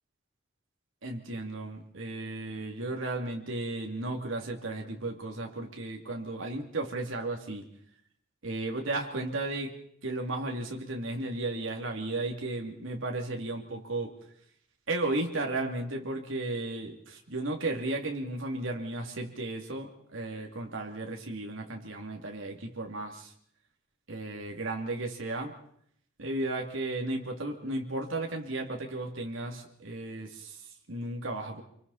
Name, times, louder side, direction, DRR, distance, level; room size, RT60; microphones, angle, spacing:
voice 1, 1.0-7.6 8.4-9.7 10.0-14.1 14.9-23.3 24.1-25.5 26.2-30.6 30.9-31.6, right 2 dB, 75° right, 1 dB, 2.7 m, -34 dB
27.5 x 24.0 x 4.2 m, 0.68 s
head